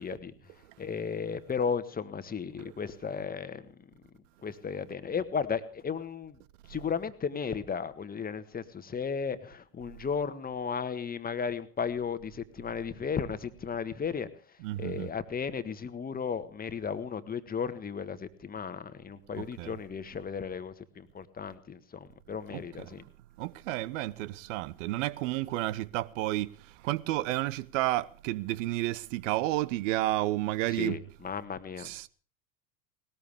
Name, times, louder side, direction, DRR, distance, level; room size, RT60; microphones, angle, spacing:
voice 1, 0.0-3.9 4.4-6.4 6.7-23.0 30.7-32.1, left 6 dB, 20° left, 1.5 m, -35 dB
voice 2, 14.6-15.1 19.3-19.7 23.4-26.5 26.8-31.0 31.8-32.1, right 16 dB, 50° right, 1.0 m, -31 dB
20.0 x 19.0 x 3.5 m
figure-of-eight pair, 80°, 48 cm